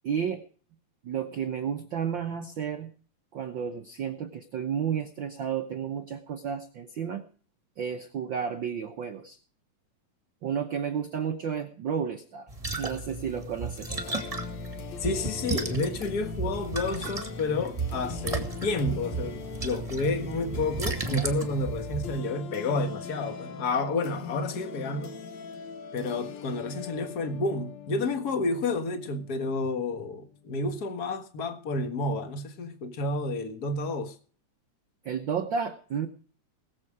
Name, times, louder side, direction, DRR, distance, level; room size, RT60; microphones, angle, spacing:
voice 1, 0.0-0.4 1.0-2.9 3.3-7.2 7.8-9.4 10.4-12.5 12.8-14.0 35.0-36.1, right 7 dB, 65° right, 1.2 m, -32 dB
sound 1, 12.5-22.2, right 3 dB, 15° right, 1.4 m, -34 dB
sound 2, 13.9-30.5, left 7 dB, 65° left, 2.4 m, -42 dB
voice 2, 15.0-25.2 25.9-34.2, left 3 dB, 40° left, 1.5 m, -30 dB
20.0 x 7.7 x 4.9 m
omnidirectional pair, 3.5 m